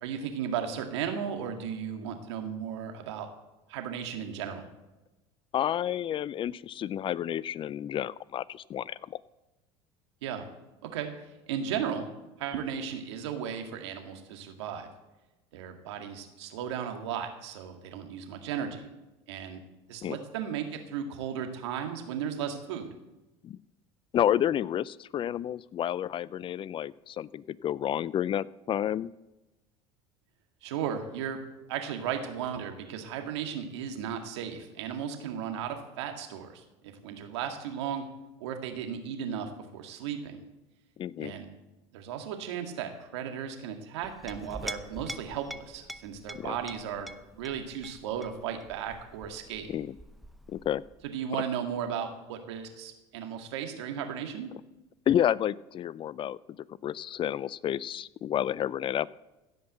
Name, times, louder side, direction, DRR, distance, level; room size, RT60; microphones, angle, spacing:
voice 1, 0.0-3.3 3.7-4.6 10.2-10.4 10.8-11.1 11.5-12.1 12.4-14.9 15.5-18.9 19.3-19.6 19.9-22.9 30.6-31.4 31.7-38.0 38.4-40.4 41.2-41.5 41.9-47.1 47.4-49.7 51.0-54.5, right 8 dB, 85° right, 5 dB, 1.9 m, -35 dB
voice 2, 5.5-9.2 20.0-20.2 23.4-23.6 24.1-29.1 41.0-41.3 46.3-46.6 49.7-49.9 50.5-50.8 55.1-56.6 56.8-59.1, left 10 dB, 35° left, 21 dB, 0.4 m, -30 dB
Chink clink, 44.0-51.1, equal, ahead, 0.7 m, -45 dB
16.0 x 5.6 x 7.9 m, 1.0 s
supercardioid pair, 90°, 14 cm